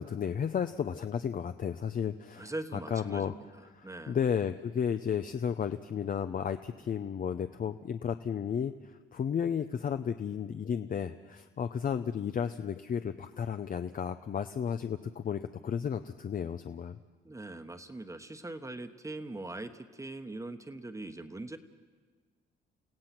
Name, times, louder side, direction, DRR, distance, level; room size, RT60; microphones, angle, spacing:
voice 1, 0.0-3.3 3.7-17.0, left 7 dB, 45° left, 9 dB, 0.7 m, -33 dB
voice 2, 2.4-4.2 17.2-21.6, right 2 dB, 15° right, 8 dB, 1.2 m, -42 dB
29.5 x 16.0 x 6.0 m, 1.4 s
cardioid pair, 90°, 20 cm